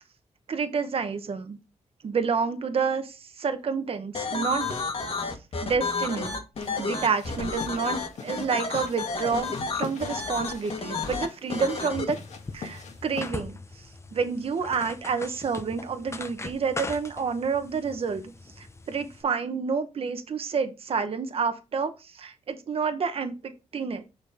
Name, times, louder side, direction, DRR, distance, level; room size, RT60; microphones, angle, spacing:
voice 1, 0.5-1.6 2.0-4.7 5.6-6.4 6.8-12.2 12.5-13.6 14.1-24.0, right 5 dB, 50° right, 8 dB, 1.0 m, -29 dB
sound 1, 4.1-12.0, left 4 dB, 50° left, 1.7 m, -31 dB
sound 2, 6.6-13.3, left 5 dB, 70° left, 1.6 m, -42 dB
sound 3, 12.1-19.2, left 3 dB, 20° left, 0.8 m, -41 dB
6.4 x 5.1 x 3.7 m, 0.27 s
cardioid pair, 90°, 12 cm